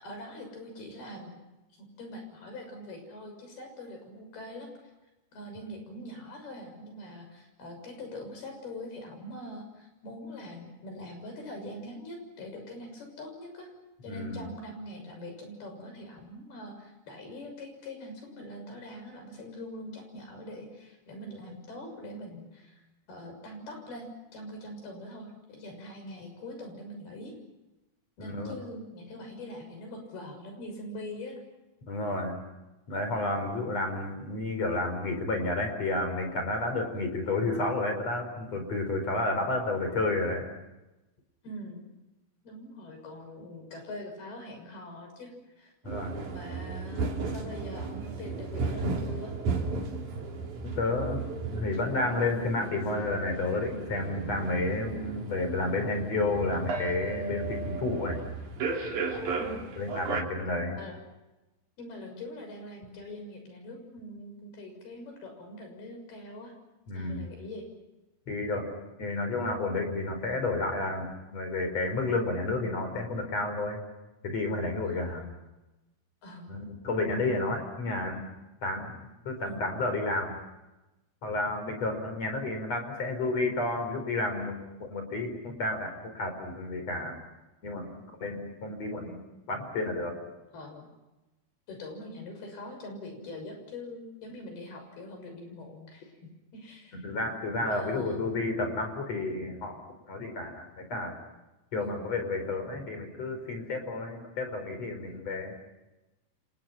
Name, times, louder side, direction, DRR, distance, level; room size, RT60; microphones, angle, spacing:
voice 1, 0.0-1.4 1.8-4.9 5.3-13.7 14.0-27.3 28.2-31.4 36.9-37.2 41.4-41.9 42.4-45.7 46.3-49.3 59.4-59.7 60.7-61.0 61.8-66.6 66.9-67.6 74.9-75.4 76.2-76.5 79.4-79.9 90.5-90.9 91.7-97.0 97.7-98.3 101.8-102.2, left 1 dB, 80° left, 4 dB, 8.5 m, -43 dB
voice 2, 14.1-14.5 28.2-28.5 31.9-32.4 32.9-40.4 45.8-46.2 50.6-51.2 51.5-58.2 59.8-60.8 66.9-67.3 68.3-68.7 69.0-73.8 74.2-75.2 76.5-78.3 78.6-78.9 79.3-80.3 81.2-87.2 87.6-87.9 88.2-89.2 89.5-90.2 96.9-99.8 100.1-101.1 101.7-105.5, left 2 dB, 45° left, 5 dB, 5.7 m, -31 dB
sound 1, 45.9-60.2, right 4 dB, 55° right, 4.5 m, -35 dB
29.5 x 29.0 x 5.9 m, 1.0 s
omnidirectional pair, 4.3 m